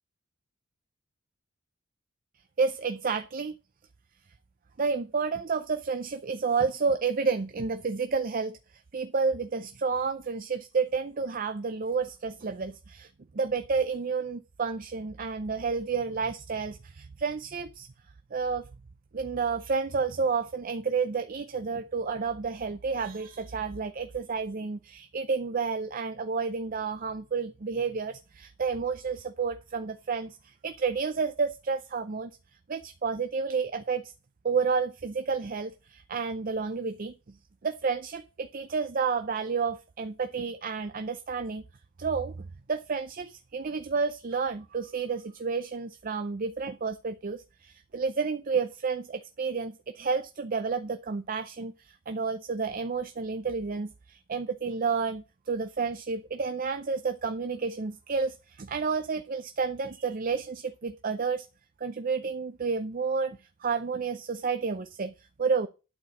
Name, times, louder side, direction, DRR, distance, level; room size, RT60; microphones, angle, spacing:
voice 1, 2.6-3.5 4.8-8.6 8.9-17.9 18.3-18.6 19.1-32.3 32.7-34.1 34.4-37.4 37.6-41.6 42.0-61.5 61.8-65.7, right 5 dB, 45° right, 0.5 m, -30 dB
11.5 x 4.5 x 6.5 m
head